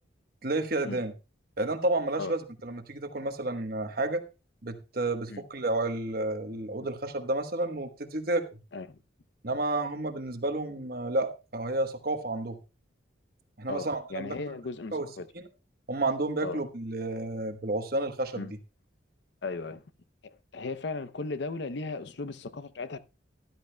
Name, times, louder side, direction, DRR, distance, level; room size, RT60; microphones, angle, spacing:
voice 1, 0.4-1.1 1.6-4.2 4.6-8.6 9.4-12.6 13.6-14.4 14.9-15.1 15.3-15.5 15.9-18.5, right 2 dB, 50° right, 1.1 m, -31 dB
voice 2, 13.7-15.2 16.4-16.6 18.4-18.5 19.4-19.8 20.5-23.0, left 3 dB, 60° left, 0.6 m, -36 dB
13.5 x 12.0 x 2.2 m
head